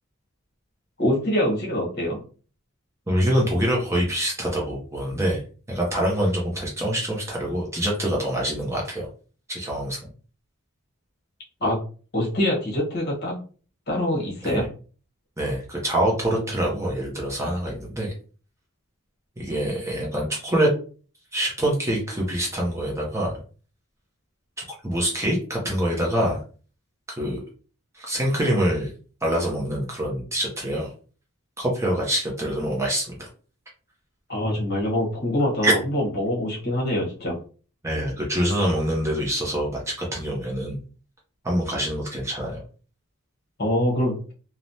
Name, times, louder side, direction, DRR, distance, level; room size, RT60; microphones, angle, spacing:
voice 1, 1.0-2.2 11.6-11.8 12.1-13.4 13.9-14.6 34.3-37.4 43.6-44.1, left 1 dB, 45° left, -3 dB, 1.1 m, -24 dB
voice 2, 3.1-5.4 5.7-9.1 9.5-10.0 14.4-14.7 15.4-18.1 19.4-20.7 21.3-23.4 24.6-26.4 27.2-27.4 27.9-28.9 29.2-30.9 31.6-33.3 35.6-35.7 37.8-40.8 41.4-42.6, right 1 dB, 15° right, -2 dB, 0.6 m, -25 dB
3.1 x 2.0 x 2.6 m, 0.39 s
head